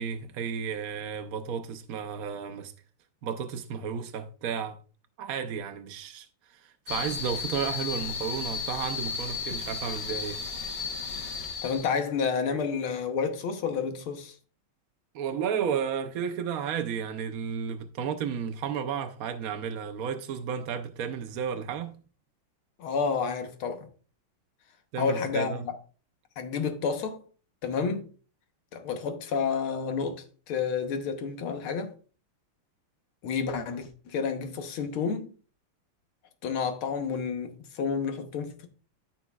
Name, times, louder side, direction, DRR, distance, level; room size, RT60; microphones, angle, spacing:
voice 1, 0.0-2.7 3.2-4.8 5.2-10.4 15.1-21.9 24.9-25.7, right 7 dB, 70° right, 0.8 m, -33 dB
sound 1, 6.9-11.9, left 5 dB, 60° left, 1.6 m, -34 dB
voice 2, 11.6-14.4 22.8-23.9 25.0-25.8 26.4-27.2 27.6-28.1 28.7-31.9 33.2-35.3 36.4-38.7, left 5 dB, 75° left, 1.9 m, -30 dB
13.5 x 5.8 x 2.3 m
omnidirectional pair, 2.4 m